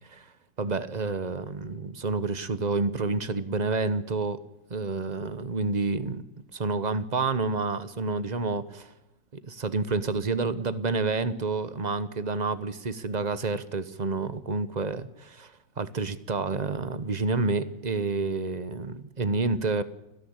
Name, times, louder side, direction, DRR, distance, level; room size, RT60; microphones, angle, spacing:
voice 1, 0.6-4.4 4.7-6.2 6.5-8.9 9.3-15.5 15.8-19.8, right 3 dB, 30° right, 14 dB, 1.0 m, -29 dB
29.5 x 10.5 x 8.8 m, 0.91 s
omnidirectional pair, 2.0 m